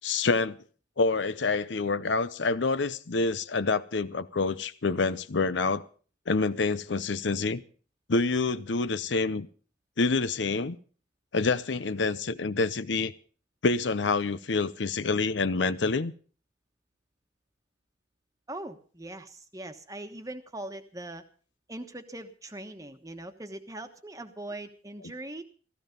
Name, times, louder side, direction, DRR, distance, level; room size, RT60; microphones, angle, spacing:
voice 1, 0.0-0.6 1.0-5.8 6.3-7.6 8.1-9.5 10.0-10.8 11.3-13.1 13.6-16.1, left 3 dB, 75° left, 0.7 m, -27 dB
voice 2, 18.5-21.2 21.7-25.4, right 1 dB, 20° right, 1.3 m, -41 dB
15.5 x 14.0 x 5.3 m
head